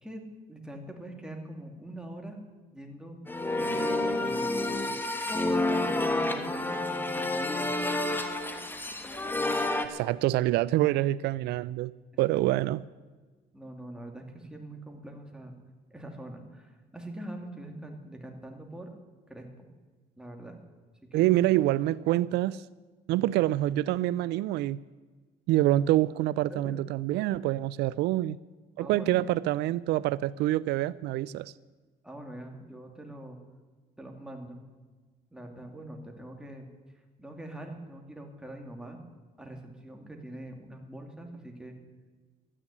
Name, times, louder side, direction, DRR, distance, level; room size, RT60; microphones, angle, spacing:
voice 1, 0.0-2.4 2.7-3.2 3.5-4.6 5.4-7.7 13.5-15.5 15.9-18.9 19.3-19.7 20.2-20.6 21.1-21.3 26.5-26.8 28.8-29.4 32.0-33.4 34.0-34.6 35.3-36.7 37.2-39.0 39.4-41.8, right 1 dB, 5° right, 2 dB, 2.6 m, -43 dB
sound 1, 3.3-9.9, left 2 dB, 10° left, 1.3 m, -29 dB
voice 2, 9.8-11.9 12.2-12.8 21.1-22.6 23.1-24.8 25.5-28.4 28.8-31.5, right 15 dB, 80° right, 19 dB, 0.4 m, -26 dB
13.0 x 10.0 x 9.7 m, 1.4 s
cardioid pair, 110°, 17 cm